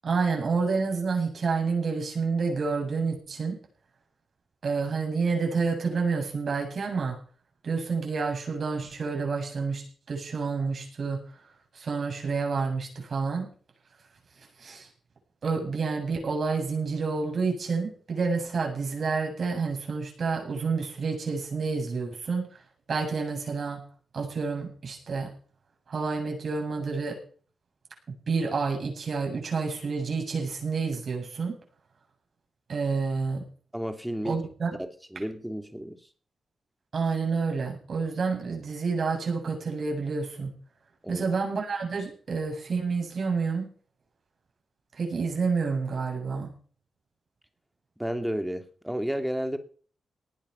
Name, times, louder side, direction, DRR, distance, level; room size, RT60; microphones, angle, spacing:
voice 1, 0.0-3.5 4.6-7.2 7.6-9.8 10.1-11.2 11.7-13.5 14.6-14.9 15.4-22.5 22.9-23.8 24.1-25.3 25.9-27.2 28.1-31.5 32.7-33.4 34.2-34.7 36.9-40.5 41.1-43.7 45.0-46.5, right 4 dB, 55° right, 7.7 m, -29 dB
voice 2, 33.7-34.4 34.8-36.0 41.0-41.3 48.0-49.6, equal, 5° right, 2.8 m, -32 dB
19.0 x 9.7 x 5.8 m
cardioid pair, 95°, 0 cm